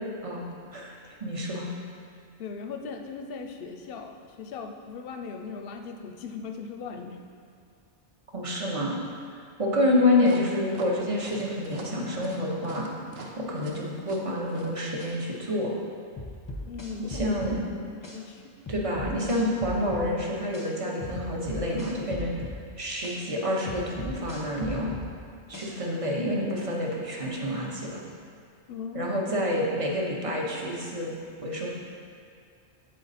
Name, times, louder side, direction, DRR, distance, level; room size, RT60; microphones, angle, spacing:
voice 1, 1.2-1.7 8.3-9.0 9.4-12.9 13.4-15.8 17.0-17.6 18.7-22.3 22.8-24.9 25.5-28.0 28.9-31.1 31.4-31.7, left 1 dB, 30° right, -2 dB, 0.8 m, -28 dB
voice 2, 2.4-7.3 16.6-17.4 17.7-18.4 28.7-29.1, left 5 dB, 65° left, 5 dB, 0.7 m, -39 dB
sound 1, 10.2-15.2, right 4 dB, 65° right, 0.9 m, -43 dB
sound 2, 16.2-17.6 18.0-18.2 18.7-20.1 20.5-20.7 21.0-22.6 23.0-23.2 23.7-25.1 25.5-25.7, left 1 dB, 20° left, 0.7 m, -37 dB
7.9 x 4.2 x 4.1 m, 2.2 s
omnidirectional pair, 1.2 m